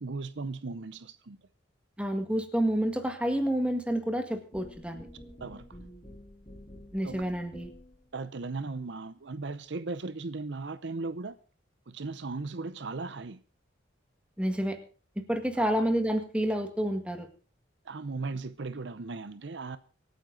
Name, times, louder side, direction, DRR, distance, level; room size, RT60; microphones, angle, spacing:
voice 1, 0.0-1.4 5.4-5.9 7.0-7.3 8.1-11.4 11.9-13.4 17.9-19.8, right 3 dB, 65° right, 0.7 m, -37 dB
voice 2, 2.0-5.1 6.9-7.7 14.4-14.8 15.2-17.3, equal, 5° right, 1.7 m, -29 dB
sound 1, 4.5-8.1, equal, 25° left, 4.2 m, -49 dB
25.0 x 9.3 x 3.9 m
head